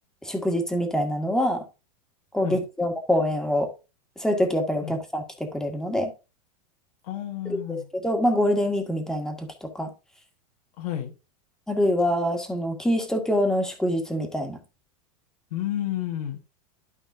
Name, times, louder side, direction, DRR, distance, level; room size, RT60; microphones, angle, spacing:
voice 1, 0.2-1.6 2.3-3.7 4.2-5.2 5.5-6.1 7.5-9.9 11.7-14.6, equal, 5° left, 1.8 m, -25 dB
voice 2, 7.0-7.9 10.8-11.1 15.5-16.4, left 12 dB, 70° left, 1.6 m, -31 dB
12.5 x 5.3 x 2.6 m
supercardioid pair, 130°, 20 cm